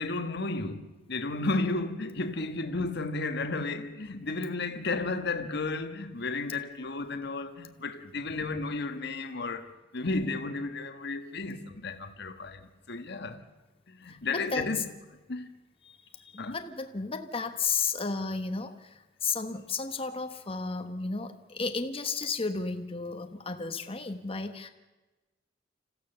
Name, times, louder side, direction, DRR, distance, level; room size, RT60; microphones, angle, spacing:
voice 1, 0.0-13.4 13.9-14.9 15.3-15.5 16.4-16.6, left 3 dB, 60° left, 1.4 m, -33 dB
voice 2, 14.1-14.9 15.8-24.7, left 4 dB, 30° left, 1.2 m, -33 dB
26.0 x 15.0 x 6.9 m
head